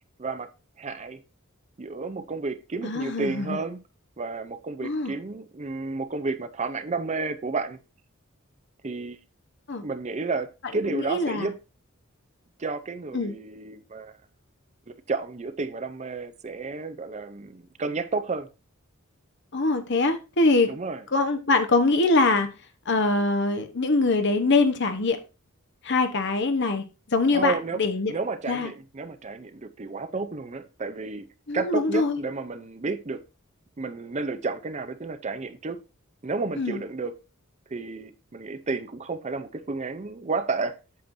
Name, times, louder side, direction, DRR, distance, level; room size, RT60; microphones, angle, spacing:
voice 1, 0.8-1.2 1.8-3.8 4.2-7.8 8.8-9.2 9.8-11.6 12.6-14.2 14.9-18.5 20.7-21.0 27.3-27.8 28.1-31.3 31.5-33.2 33.8-35.8 36.2-37.1 37.7-40.8, right 3 dB, 35° right, 0.5 m, -31 dB
voice 2, 2.8-3.6 4.8-5.1 9.7-9.8 10.9-11.5 13.1-13.3 19.5-20.7 21.1-22.5 22.9-25.2 25.8-28.1 28.5-28.7 31.5-32.2 36.6-36.8, left 3 dB, 55° left, 1.0 m, -23 dB
8.5 x 7.6 x 2.6 m
head